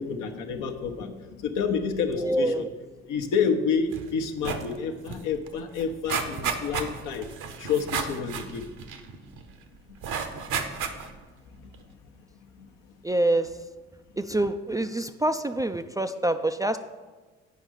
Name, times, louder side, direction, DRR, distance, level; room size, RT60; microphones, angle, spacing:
voice 1, 0.0-2.6 3.1-7.3 7.6-8.6 12.6-12.7, left 6 dB, 70° left, 5 dB, 0.9 m, -29 dB
voice 2, 2.1-2.7 13.0-13.6 14.2-16.8, right 1 dB, 10° right, 8 dB, 0.3 m, -26 dB
sound 1, 3.9-4.1 4.4-4.7 5.1-5.2 5.5-9.4 10.0-11.2 11.7-11.8, right 6 dB, 65° right, 0.9 m, -32 dB
8.4 x 5.3 x 4.9 m, 1.3 s
hypercardioid pair, 50°, 33 cm